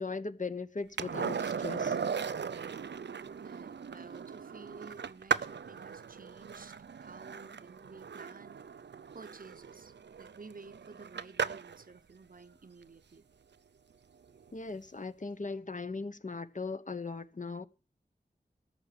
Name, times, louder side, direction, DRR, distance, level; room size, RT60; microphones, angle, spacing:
voice 1, 0.0-2.0 14.5-17.6, left 4 dB, 45° left, 0.9 m, -38 dB
Skateboard, 1.0-11.8 14.4-14.5, right 6 dB, 85° right, 0.5 m, -37 dB
voice 2, 2.4-2.8 3.4-8.7 9.1-13.3, right 4 dB, 55° right, 0.8 m, -52 dB
13.5 x 5.9 x 8.4 m
wide cardioid pair, 70°, 18 cm